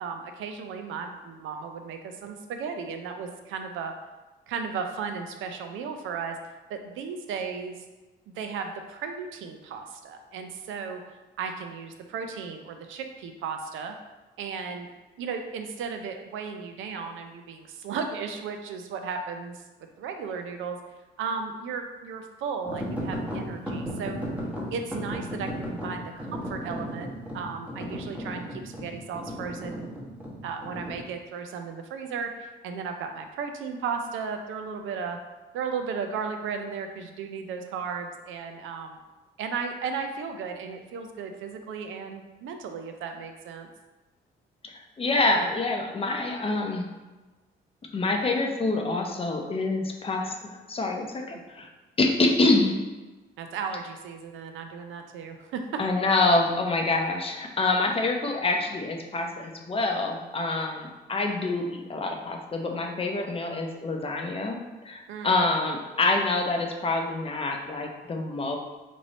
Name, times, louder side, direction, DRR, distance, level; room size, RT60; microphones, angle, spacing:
voice 1, 0.0-3.9 4.5-6.4 6.7-7.8 8.3-11.0 11.4-13.9 14.4-14.9 15.2-19.6 20.0-20.8 21.2-24.3 24.7-29.9 30.4-35.2 35.5-39.0 39.4-43.7 53.4-55.6 65.1-65.3, right 5 dB, 80° right, 5 dB, 0.4 m, -35 dB
sound 1, 22.6-31.0, equal, 5° right, 0.9 m, -35 dB
voice 2, 45.0-46.9 47.9-50.3 50.7-51.7 52.0-52.8 55.8-64.6 64.8-68.6, left 2 dB, 30° left, 2 dB, 0.5 m, -26 dB
3.1 x 2.6 x 4.0 m, 1.2 s
cardioid pair, 90°, 20 cm